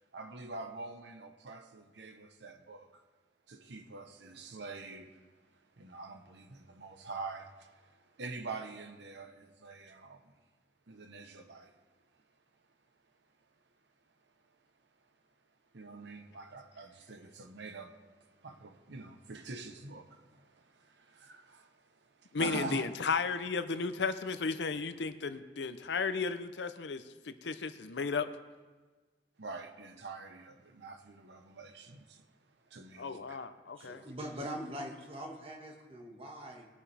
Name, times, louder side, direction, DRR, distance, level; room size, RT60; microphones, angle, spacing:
voice 1, 0.1-2.9 3.5-5.1 5.8-7.7 8.2-10.2 10.9-11.7 15.7-17.9 18.4-21.7 22.2-22.9 29.4-32.2 32.7-33.5, right 3 dB, 70° right, 0.9 m, -45 dB
voice 2, 22.3-28.3 33.0-34.0, left 4 dB, 70° left, 0.6 m, -34 dB
voice 3, 33.8-36.7, equal, 35° right, 1.7 m, -42 dB
20.0 x 7.3 x 3.4 m
head